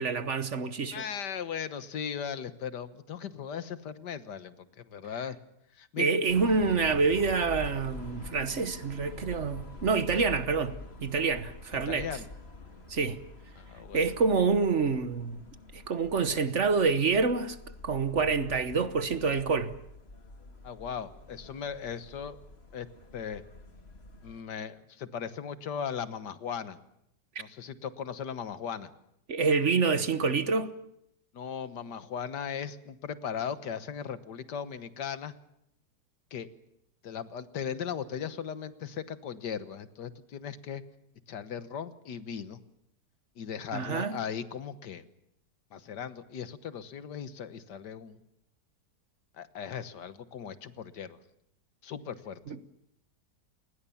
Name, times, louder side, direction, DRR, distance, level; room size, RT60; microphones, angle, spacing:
voice 1, 0.0-1.0 6.0-10.7 11.0-12.1 12.9-13.2 13.9-15.4 15.7-17.6 17.8-19.7 29.3-30.7 43.7-44.2 52.5-52.6, right 4 dB, 50° right, 1.3 m, -27 dB
voice 2, 0.9-5.4 5.7-6.1 10.1-10.2 11.9-12.3 13.6-14.1 20.6-22.4 22.7-22.9 23.1-23.4 24.2-26.8 27.4-28.9 31.3-35.3 36.3-36.5 37.0-40.8 41.3-42.6 43.4-45.0 45.7-48.2 49.3-51.2 51.8-52.4, left 7 dB, 80° left, 1.8 m, -38 dB
sound 1, 6.3-24.4, left 2 dB, 35° left, 2.5 m, -46 dB
28.0 x 20.0 x 7.1 m
omnidirectional pair, 1.8 m